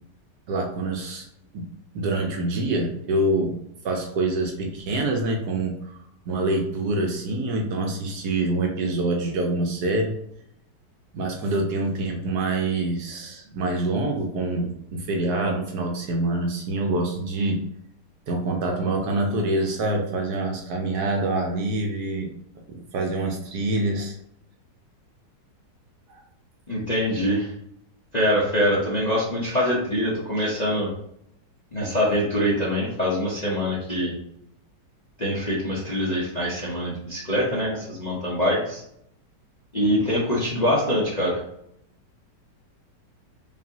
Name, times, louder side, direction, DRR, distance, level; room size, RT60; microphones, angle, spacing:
voice 1, 0.5-1.3 1.5-1.6 1.9-3.6 3.8-5.8 6.3-10.2 11.1-17.6 18.3-22.3 22.7-24.2, right 2 dB, 70° right, 1 dB, 1.1 m, -26 dB
voice 2, 26.7-27.5 28.1-30.9 31.7-34.1 35.2-38.8 39.7-41.4, equal, 40° left, -6 dB, 0.6 m, -24 dB
5.2 x 2.7 x 2.7 m, 0.73 s
omnidirectional pair, 1.9 m